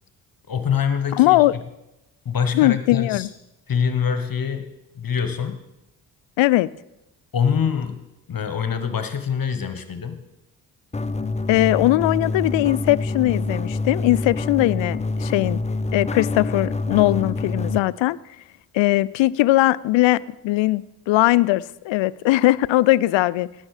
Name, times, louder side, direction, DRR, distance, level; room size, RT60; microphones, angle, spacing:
voice 1, 0.5-1.6 2.2-3.3 3.7-4.7 4.9-5.6 7.3-10.2, left 7 dB, 45° left, 10 dB, 1.2 m, -25 dB
voice 2, 1.1-1.5 2.5-3.3 6.4-6.7 11.5-15.6 15.9-18.2 18.7-23.5, left 17 dB, 70° left, 20 dB, 0.5 m, -19 dB
sound 1, 10.9-17.8, left 3 dB, 15° left, 0.6 m, -26 dB
17.5 x 6.4 x 4.9 m, 0.93 s
hypercardioid pair, 40°, 48 cm